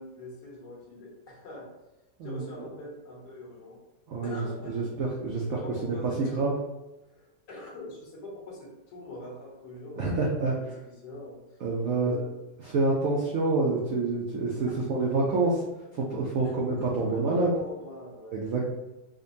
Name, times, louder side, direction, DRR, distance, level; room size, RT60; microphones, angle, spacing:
voice 1, 0.0-1.7 2.2-3.8 4.2-4.9 5.3-6.5 7.0-12.3 14.7-15.1 16.4-18.6, left 1 dB, 60° left, -5 dB, 1.6 m, -43 dB
voice 2, 4.1-5.4 5.8-6.5 10.0-10.5 11.6-12.1 12.7-15.6 15.9-17.5 18.3-18.6, right 3 dB, 80° right, -3 dB, 0.7 m, -27 dB
5.1 x 2.2 x 2.6 m, 1.0 s
omnidirectional pair, 2.1 m